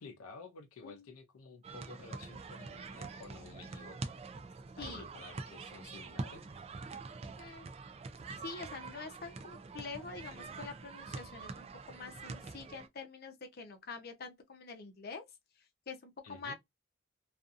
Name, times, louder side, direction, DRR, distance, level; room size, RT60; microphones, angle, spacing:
voice 1, 0.0-4.1 4.8-6.4 16.2-16.5, left 3 dB, 90° left, 0.5 m, -52 dB
sound 1, 1.6-12.9, right 4 dB, 30° right, 0.3 m, -45 dB
voice 2, 8.4-15.2 15.9-16.5, left 4 dB, 50° left, 0.6 m, -46 dB
2.6 x 2.4 x 2.4 m
head